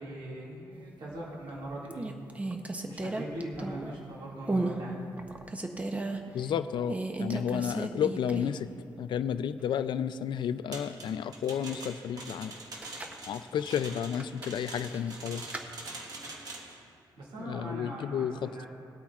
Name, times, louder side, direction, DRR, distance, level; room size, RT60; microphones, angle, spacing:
voice 1, 0.0-2.1 2.9-5.1 17.2-18.7, right 1 dB, 70° right, -6 dB, 2.1 m, -40 dB
sound 1, 1.1-1.5 1.9-4.0 4.5-4.8 5.2-6.2 6.9-8.7 9.0-9.1 12.6-13.2 14.1-15.7, right 2 dB, 15° right, 0.7 m, -34 dB
voice 2, 6.3-8.7 9.0-12.5 13.3-15.4 17.4-18.7, left 8 dB, 70° left, 12 dB, 0.4 m, -32 dB
sound 2, 10.7-16.8, right 2 dB, 50° right, 1.4 m, -44 dB
19.0 x 8.6 x 2.4 m, 2.6 s
wide cardioid pair, 145°, 8 cm